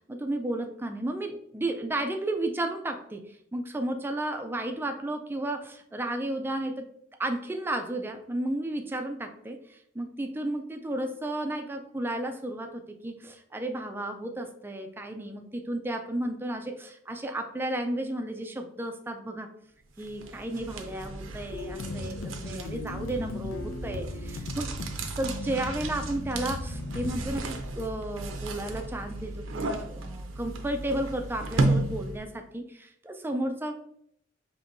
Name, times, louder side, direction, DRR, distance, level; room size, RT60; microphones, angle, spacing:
voice 1, 0.1-3.2 3.5-6.9 7.2-15.4 15.7-19.5 20.0-22.2 22.4-24.7 25.1-33.7, right 1 dB, 10° right, 5 dB, 0.3 m, -33 dB
sound 1, 20.0-32.4, right 2 dB, 75° right, 0.5 m, -34 dB
sound 2, 21.5-27.4, left 2 dB, 90° left, 0.6 m, -37 dB
5.2 x 2.9 x 2.6 m, 0.72 s
head